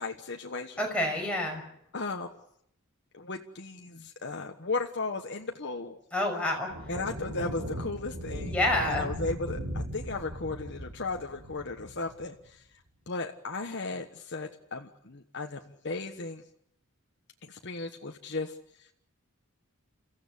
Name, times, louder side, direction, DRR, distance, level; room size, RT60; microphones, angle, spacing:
voice 1, 0.0-0.8 1.9-2.4 3.1-6.0 6.9-8.6 8.8-12.6 13.1-16.4 17.4-18.6, left 3 dB, 50° left, 3 dB, 1.3 m, -35 dB
voice 2, 0.8-1.6 6.1-6.7 8.5-9.1, left 1 dB, 5° left, 0 dB, 5.9 m, -28 dB
sound 1, 6.7-12.3, equal, 70° right, 3.9 m, -38 dB
29.5 x 15.0 x 8.4 m, 0.71 s
head